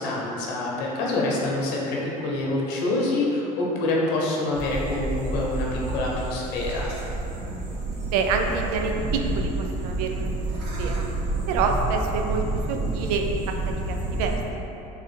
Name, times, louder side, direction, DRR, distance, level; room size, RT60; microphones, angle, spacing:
voice 1, 0.0-6.9, left 2 dB, 70° left, -4 dB, 0.9 m, -26 dB
sound 1, 4.5-14.4, right 2 dB, 60° right, 0.9 m, -29 dB
voice 2, 8.1-11.0 11.5-12.4 12.7-14.6, right 4 dB, 85° right, 3 dB, 0.4 m, -28 dB
3.6 x 2.4 x 4.3 m, 3.0 s
supercardioid pair, 95°, 20 cm